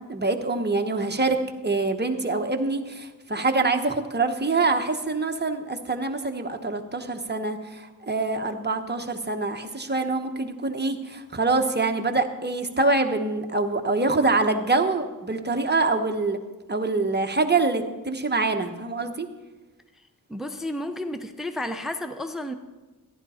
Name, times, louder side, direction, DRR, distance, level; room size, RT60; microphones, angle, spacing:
voice 1, 0.1-1.4 1.6-16.4 16.7-19.3, right 3 dB, 25° right, 5 dB, 1.0 m, -25 dB
voice 2, 20.3-22.5, left 1 dB, ahead, 8 dB, 0.6 m, -32 dB
14.5 x 11.0 x 4.3 m, 1.2 s
wide cardioid pair, 100°, 40 cm